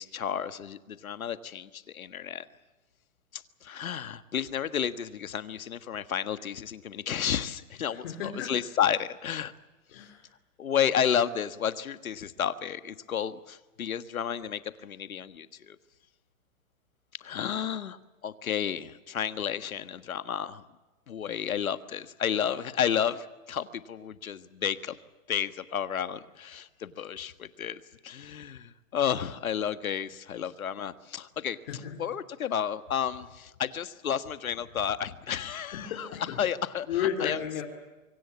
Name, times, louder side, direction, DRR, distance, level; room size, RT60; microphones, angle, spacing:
voice 1, 0.0-2.5 3.3-9.5 10.6-15.8 17.2-20.6 21.1-25.0 25.3-31.6 32.0-37.4, left 8 dB, 85° left, 12 dB, 1.6 m, -32 dB
voice 2, 7.9-8.5 9.9-10.2 31.7-32.0 35.7-36.4 36.9-37.6, left 9 dB, 45° left, 1 dB, 3.7 m, -33 dB
24.5 x 24.5 x 7.3 m, 1.1 s
hypercardioid pair, 155°, 41 cm